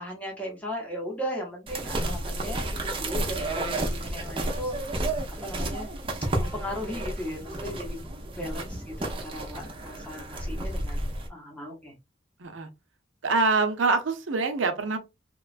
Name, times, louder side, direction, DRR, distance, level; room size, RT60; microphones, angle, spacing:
voice 1, 0.0-5.0 5.4-5.9 6.4-8.0 8.3-12.0, equal, 5° left, 0.7 m, -37 dB
walking on path to sheep, 1.7-11.3, right 1 dB, 25° right, 0.5 m, -31 dB
voice 2, 13.2-15.0, right 3 dB, 85° right, 0.6 m, -25 dB
3.0 x 2.2 x 2.4 m
head